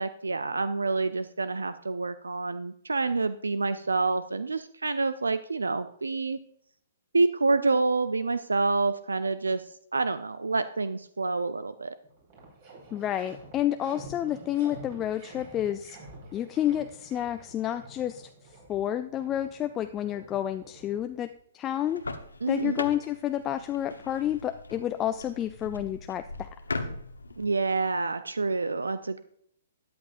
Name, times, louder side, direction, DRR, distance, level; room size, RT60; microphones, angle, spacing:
voice 1, 0.0-6.4 7.1-9.6 9.9-11.9 22.4-22.8 27.4-29.2, right 3 dB, 80° right, 13 dB, 0.5 m, -27 dB
sound 1, 11.6-11.7 12.0-21.4, right 1 dB, 45° right, 5.0 m, -49 dB
voice 2, 12.9-16.0 16.3-18.3 18.7-21.3 21.5-22.0 22.5-26.5 26.7-26.9, left 11 dB, 20° left, 9 dB, 0.4 m, -30 dB
sound 2, 21.7-27.4, left 3 dB, 80° left, 1.0 m, -39 dB
13.5 x 9.5 x 2.6 m, 0.67 s
figure-of-eight pair, 125°, 0 cm